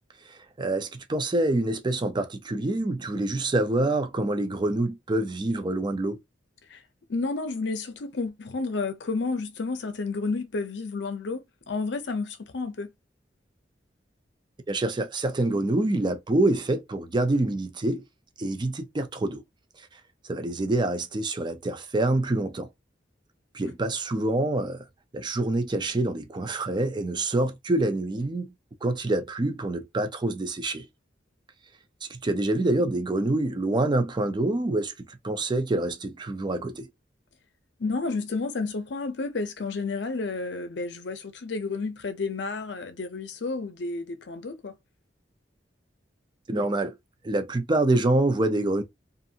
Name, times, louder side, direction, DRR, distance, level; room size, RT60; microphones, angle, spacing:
voice 1, 0.3-6.2 14.7-18.0 18.4-19.4 20.2-22.7 23.5-24.9 25.1-28.5 28.8-30.9 32.0-36.9 46.5-47.0 47.2-48.8, right 2 dB, 25° right, 0.4 m, -26 dB
voice 2, 7.1-12.9 37.8-44.7, left 3 dB, 70° left, 0.6 m, -31 dB
2.5 x 2.5 x 2.7 m
head